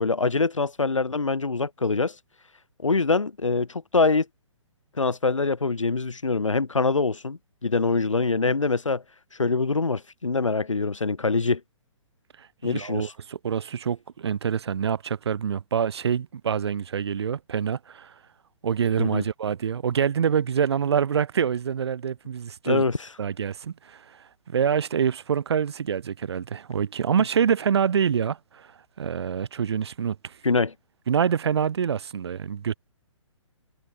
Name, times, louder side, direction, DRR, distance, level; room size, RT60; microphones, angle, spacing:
voice 1, 0.0-2.2 2.8-4.3 5.0-9.0 9.4-11.6 12.6-13.1 19.0-19.2 22.7-23.1 30.4-30.7, left 3 dB, 75° left, 3.7 m, -24 dB
voice 2, 12.4-18.1 18.6-22.8 23.2-24.2 24.5-28.7 29.0-30.3 31.1-32.7, right 7 dB, 55° right, 5.1 m, -26 dB
figure-of-eight pair, 130°, 16 cm